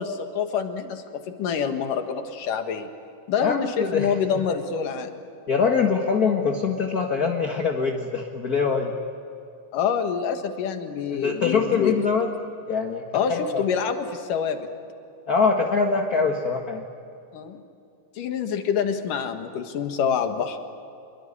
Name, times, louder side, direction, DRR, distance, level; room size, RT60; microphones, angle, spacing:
voice 1, 0.0-2.9 3.3-5.1 9.7-11.9 13.1-14.7 17.3-17.6 18.2-20.6, left 7 dB, 80° left, 6 dB, 3.3 m, -26 dB
voice 2, 3.4-4.1 5.5-8.9 11.1-12.3 12.7-13.6 15.3-16.9, left 5 dB, 40° left, 2 dB, 1.5 m, -23 dB
26.5 x 22.5 x 9.8 m, 2.5 s
omnidirectional pair, 3.7 m